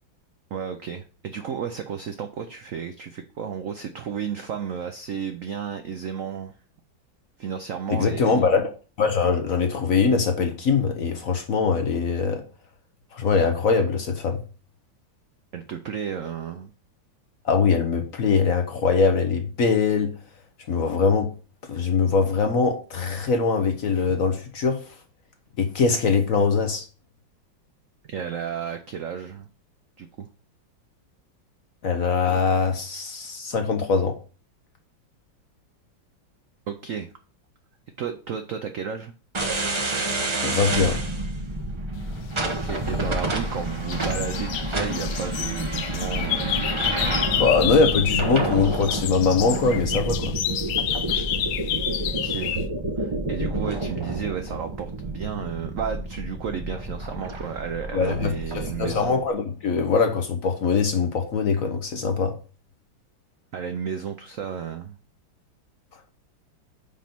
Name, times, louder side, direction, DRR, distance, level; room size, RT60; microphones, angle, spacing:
voice 1, 0.5-6.5 7.4-8.5 15.5-16.7 28.0-29.5 30.0-30.3 36.7-37.1 38.0-39.1 42.4-46.5 52.2-52.6 53.0-59.3 63.5-65.0, right 7 dB, 70° right, 0.7 m, -33 dB
voice 2, 7.9-8.7 9.0-12.4 13.1-14.4 17.4-20.1 20.7-21.3 21.7-24.8 25.6-26.8 31.8-34.1 40.4-41.0 47.3-50.3 51.1-51.2 57.9-62.3, left 5 dB, 55° left, 1.1 m, -22 dB
sound 1, 39.3-59.1, right 2 dB, 30° right, 0.5 m, -29 dB
sound 2, 42.7-43.6 43.9-48.4 48.6-52.7, left 11 dB, 80° left, 1.4 m, -29 dB
5.2 x 5.2 x 5.9 m
omnidirectional pair, 2.1 m